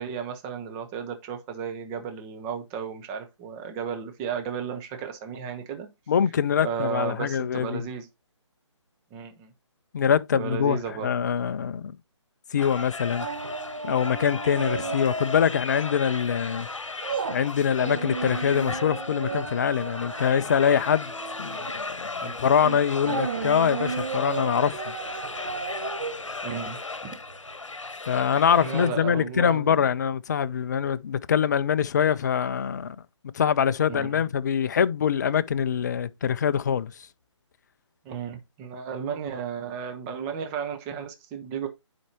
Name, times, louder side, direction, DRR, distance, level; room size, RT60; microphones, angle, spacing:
voice 1, 0.0-5.9 6.6-8.1 9.1-9.5 10.3-11.1 14.8-14.9 21.5-21.6 22.2-22.4 23.0-23.3 26.4-27.1 28.6-29.8 33.9-34.2 38.0-41.7, right 7 dB, 15° right, 0.8 m, -34 dB
voice 2, 6.1-7.8 9.9-11.9 12.5-13.3 13.8-16.7 17.3-21.1 21.4-24.9 28.1-33.0 33.3-36.9, left 8 dB, 35° left, 0.4 m, -24 dB
sound 1, 12.6-28.9, left 3 dB, 85° left, 1.0 m, -36 dB
sound 2, 13.2-15.6 15.9-16.1 16.6-27.5 27.9-28.0, right 5 dB, 45° right, 1.0 m, -34 dB
10.0 x 4.3 x 2.9 m
figure-of-eight pair, 150°, 16 cm